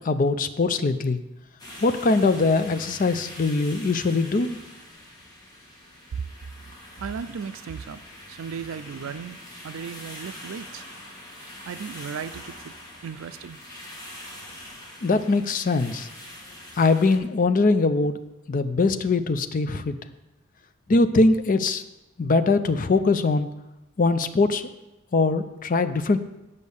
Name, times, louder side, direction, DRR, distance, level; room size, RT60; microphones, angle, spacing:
voice 1, 0.0-1.2 1.8-4.6 15.0-16.1 16.8-18.2 18.5-20.0 20.9-21.8 22.2-23.5 24.0-24.6 25.1-26.2, left 3 dB, 40° left, 10 dB, 0.5 m, -22 dB
sound 1, 1.6-17.2, left 1 dB, 20° left, 2.0 m, -43 dB
voice 2, 7.0-8.0 8.3-9.4 9.6-10.8 11.7-12.7 13.0-13.6 14.1-14.4, right 6 dB, 85° right, 13 dB, 0.4 m, -36 dB
8.3 x 5.3 x 7.0 m, 0.98 s
head